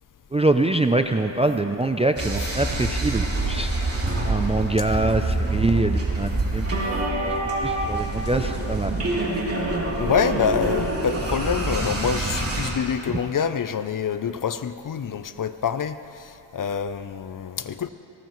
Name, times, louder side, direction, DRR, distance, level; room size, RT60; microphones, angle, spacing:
voice 1, 0.3-3.7 4.3-6.7 7.2-7.3 7.6-8.9, right 2 dB, 15° right, 7 dB, 0.4 m, -24 dB
sound 1, 2.2-12.7, right 2 dB, 30° right, 3.0 m, -26 dB
voice 2, 10.0-17.9, left 7 dB, 45° left, 12 dB, 0.6 m, -26 dB
19.5 x 18.5 x 3.1 m, 2.8 s
cardioid pair, 100°, 48 cm